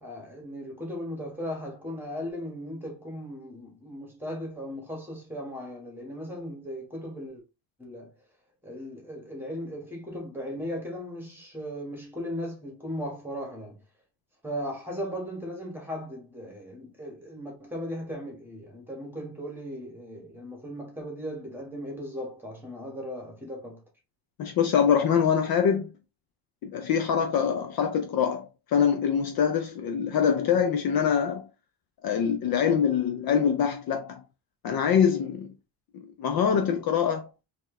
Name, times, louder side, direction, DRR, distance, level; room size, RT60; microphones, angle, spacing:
voice 1, 0.0-7.4 7.8-8.1 8.6-13.8 14.4-23.8, equal, 5° right, 1.4 m, -37 dB
voice 2, 24.4-25.9 26.6-31.5 32.0-34.2 34.6-35.5 36.2-37.3, left 7 dB, 50° left, 0.5 m, -24 dB
4.3 x 3.0 x 3.1 m
cardioid pair, 150°, 48 cm